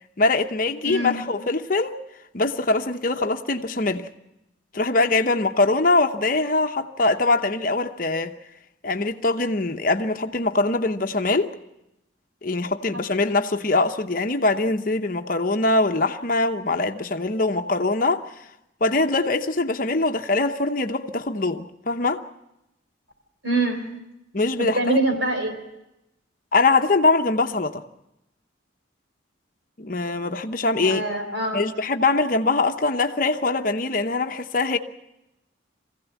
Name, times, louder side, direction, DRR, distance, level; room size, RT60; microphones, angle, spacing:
voice 1, 0.2-2.0 2.3-4.1 4.7-8.3 8.8-11.5 12.4-18.2 18.8-22.2 24.3-25.0 26.5-27.8 29.8-31.0 31.5-34.8, left 3 dB, 45° left, 0.9 m, -22 dB
voice 2, 0.8-1.2 12.9-13.0 23.4-24.0 24.6-25.6 30.8-31.6, right 2 dB, 85° right, 3.8 m, -25 dB
23.5 x 16.0 x 8.2 m
head